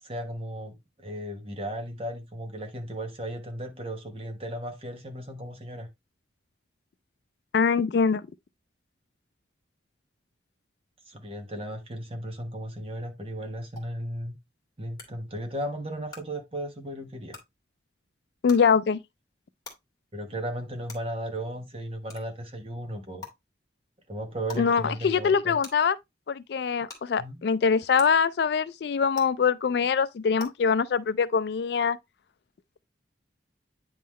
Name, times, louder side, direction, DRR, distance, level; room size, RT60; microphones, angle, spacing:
voice 1, 0.0-5.9 11.0-14.3 14.8-17.4 20.1-23.2 24.1-25.6 27.2-27.4, right 1 dB, 30° right, 1.2 m, -35 dB
voice 2, 7.5-8.3 18.4-19.0 24.6-26.0 26.3-32.0, left 6 dB, 60° left, 0.3 m, -23 dB
sound 1, 13.8-13.9 15.0-15.1 16.1-16.2 17.3-17.4 18.5-18.6 19.6-19.7 20.9-21.0 22.1-22.2 23.2-23.3 24.5-24.6 25.6-25.7 26.9-27.0 28.0-28.1 29.1-29.2 30.4-30.5, left 4 dB, 20° left, 2.0 m, -40 dB
9.3 x 3.7 x 3.1 m
head